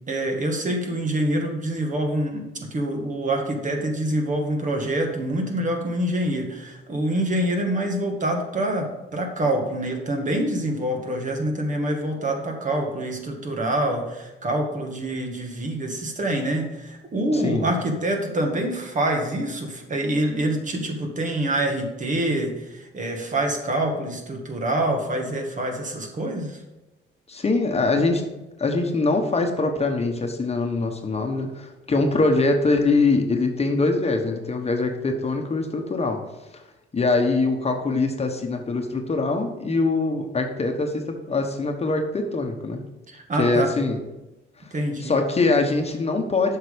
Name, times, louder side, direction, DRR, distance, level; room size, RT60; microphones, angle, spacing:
voice 1, 0.1-26.6 43.1-43.7 44.7-45.1, right 1 dB, 40° right, 3 dB, 1.8 m, -26 dB
voice 2, 17.3-17.7 27.3-28.3 28.6-36.2 36.5-36.6 36.9-42.8 43.4-44.0 45.0-46.6, left 3 dB, 30° left, 3 dB, 1.2 m, -23 dB
7.6 x 5.9 x 5.1 m, 1.0 s
cardioid pair, 90°, 20 cm